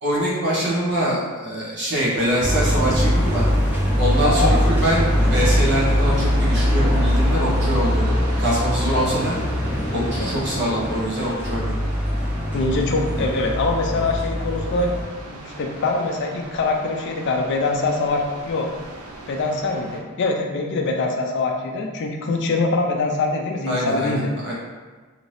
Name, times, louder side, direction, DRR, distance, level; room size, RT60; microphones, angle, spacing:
voice 1, 0.0-3.5 4.0-9.3 9.9-11.8 23.7-24.5, right 1 dB, 55° right, -6 dB, 0.9 m, -24 dB
sound 1, 2.1-20.0, right 1 dB, 80° right, 0.5 m, -39 dB
sound 2, 2.4-15.0, equal, 10° right, 0.6 m, -22 dB
voice 2, 9.9-10.3 12.5-14.9 15.3-18.7 19.3-24.3, left 3 dB, 55° left, 2 dB, 0.4 m, -23 dB
2.8 x 2.6 x 3.2 m, 1.3 s
head